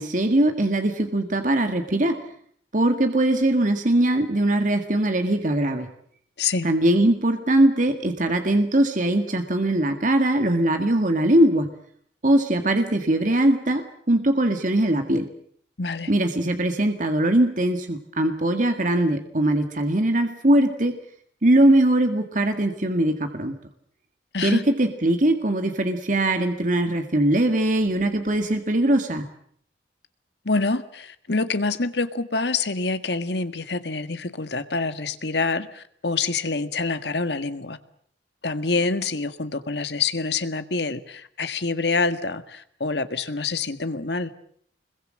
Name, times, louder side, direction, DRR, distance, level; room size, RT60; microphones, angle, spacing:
voice 1, 0.0-2.2 2.7-5.9 6.6-11.7 12.2-15.3 16.1-21.0 21.4-23.6 24.4-29.2, right 1 dB, 45° right, 6 dB, 1.8 m, -21 dB
voice 2, 6.4-6.7 15.8-16.1 24.3-24.6 30.4-37.8 38.4-44.3, left 4 dB, 70° left, 10 dB, 1.7 m, -26 dB
26.0 x 22.0 x 7.6 m, 0.64 s
head